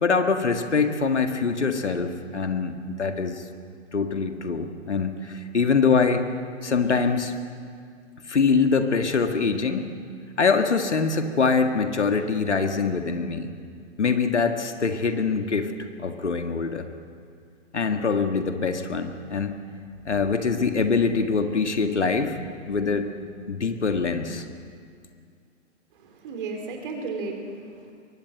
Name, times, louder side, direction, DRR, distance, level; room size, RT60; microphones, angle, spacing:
voice 1, 0.0-3.4 3.9-6.2 6.6-7.3 8.3-9.9 10.4-13.5 14.0-15.7 16.0-16.9 17.7-19.5 20.1-22.4 22.7-23.1 23.5-24.5, left 5 dB, 70° left, 6 dB, 1.9 m, -24 dB
voice 2, 25.9-27.9, right 3 dB, 45° right, 3 dB, 4.4 m, -34 dB
22.5 x 18.0 x 7.8 m, 2.2 s
figure-of-eight pair, 115°, 35 cm